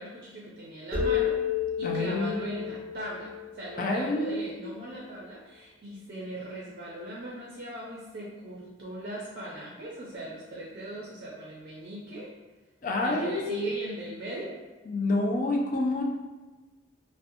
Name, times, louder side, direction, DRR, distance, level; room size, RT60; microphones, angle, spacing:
voice 1, 0.0-1.4 1.8-12.3 13.0-14.5, right 1 dB, 50° right, -4 dB, 0.4 m, -39 dB
sound 1, 0.9-4.4, left 8 dB, 5° left, 0.7 m, -31 dB
voice 2, 1.8-2.5 3.8-4.7 12.8-13.7 14.9-16.0, left 2 dB, 45° left, 0 dB, 0.4 m, -28 dB
2.7 x 2.1 x 2.6 m, 1.2 s
head